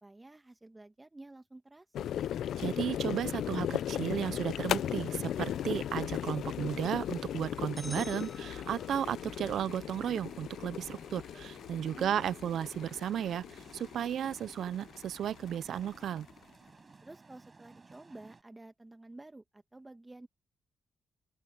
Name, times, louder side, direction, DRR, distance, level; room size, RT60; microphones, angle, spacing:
voice 1, 0.0-2.1 11.9-12.3 17.0-20.3, right 2 dB, 20° right, 2.0 m, -51 dB
sound 1, 1.9-16.4, left 10 dB, 80° left, 0.5 m, -37 dB
voice 2, 2.6-16.3, right 9 dB, 75° right, 0.4 m, -34 dB
sound 2, 3.7-18.4, right 4 dB, 35° right, 6.5 m, -57 dB
sound 3, 7.8-9.3, left 1 dB, 15° left, 3.0 m, -48 dB
open air
cardioid pair, 65°, 0 cm